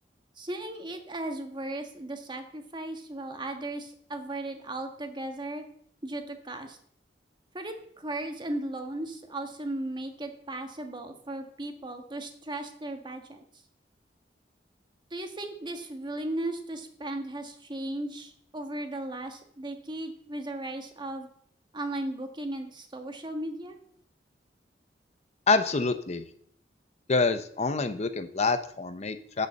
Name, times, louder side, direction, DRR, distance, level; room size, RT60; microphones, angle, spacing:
voice 1, 0.4-5.6 6.0-6.8 7.5-13.4 15.1-21.3 21.7-23.8, right 1 dB, 25° right, 5 dB, 1.4 m, -36 dB
voice 2, 25.5-26.2 27.1-29.5, left 4 dB, 40° left, 10 dB, 0.7 m, -26 dB
8.5 x 6.7 x 7.6 m, 0.63 s
head